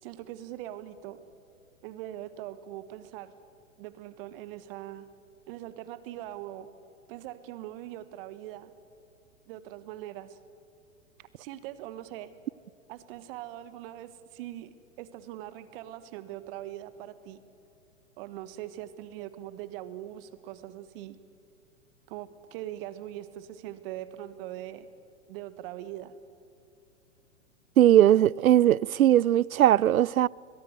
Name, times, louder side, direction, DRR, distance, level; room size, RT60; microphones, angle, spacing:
voice 1, 0.0-1.2 1.8-3.3 3.8-5.1 5.5-6.7 7.1-8.7 9.5-10.4 11.2-12.3 12.9-17.4 18.2-21.2 22.1-24.9 25.3-26.1, right 13 dB, 45° right, 1.5 m, -41 dB
voice 2, 27.8-30.3, right 12 dB, 85° right, 0.5 m, -19 dB
22.0 x 21.0 x 8.1 m
hypercardioid pair, 110°, 41 cm